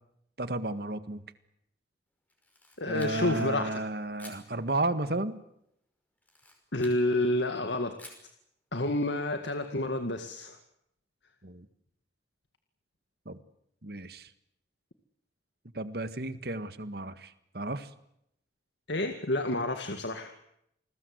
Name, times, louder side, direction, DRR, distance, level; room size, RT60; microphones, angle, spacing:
voice 1, 0.4-1.2 2.9-5.4 11.4-11.7 13.2-13.4 13.8-14.3 15.7-17.9, right 2 dB, 55° right, 12 dB, 1.7 m, -33 dB
Camera, 2.3-3.5 4.2-4.5 6.2-7.0 8.0-8.3, left 1 dB, 10° left, 5.4 m, -51 dB
voice 2, 2.8-3.8 6.7-7.9 8.7-10.6 18.9-20.3, left 1 dB, 75° left, 7 dB, 2.0 m, -29 dB
29.0 x 21.0 x 8.1 m, 0.77 s
head